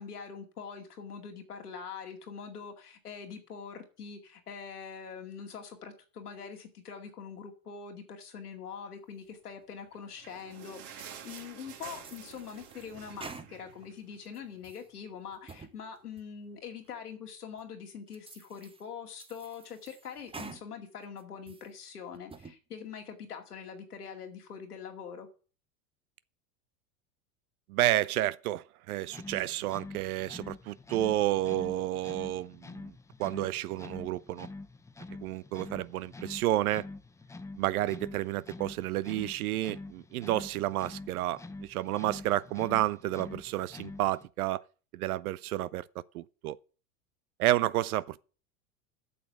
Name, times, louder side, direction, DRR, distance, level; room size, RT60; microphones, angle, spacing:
voice 1, 0.0-25.3, left 6 dB, 90° left, 2.3 m, -44 dB
sound 1, 9.8-14.5 14.9-15.0 15.3-15.4 16.1-16.2, right 8 dB, 50° right, 2.0 m, -49 dB
sound 2, 10.9-11.5 12.0-13.9 14.3-14.9 15.3-15.7 16.2-16.3 16.9-17.0 17.6-17.7 18.1-18.8 19.2-20.6 21.0-21.7 22.1-22.6, right 4 dB, 10° right, 1.0 m, -49 dB
voice 2, 27.7-32.9 33.2-34.5 35.2-36.9 37.6-44.6 44.9-45.8 46.1-46.6 47.4-48.2, right 15 dB, 75° right, 0.6 m, -30 dB
sound 3, 29.0-44.3, left 3 dB, 5° left, 0.6 m, -46 dB
8.4 x 6.5 x 7.7 m
hypercardioid pair, 95°, 44 cm